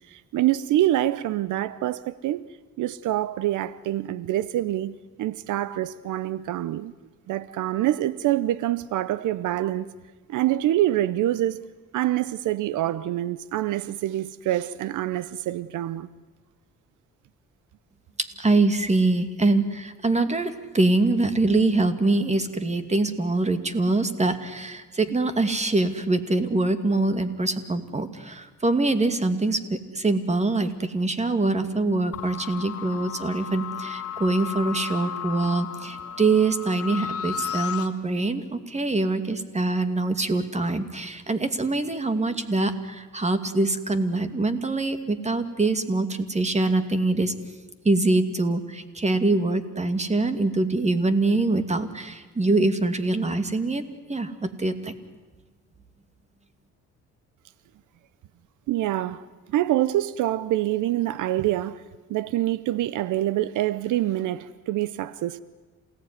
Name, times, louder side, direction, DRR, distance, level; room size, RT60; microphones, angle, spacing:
voice 1, 0.1-2.5 2.8-6.9 7.3-9.9 10.3-11.6 11.9-16.1 58.7-61.8 62.1-65.4, right 14 dB, 80° right, 0.8 m, -26 dB
voice 2, 18.2-47.3 47.8-53.8 54.1-54.9, right 2 dB, 20° right, 2.5 m, -24 dB
sound 1, 32.1-37.9, left 8 dB, 50° left, 2.3 m, -34 dB
28.0 x 18.0 x 9.7 m
cardioid pair, 90°, 30 cm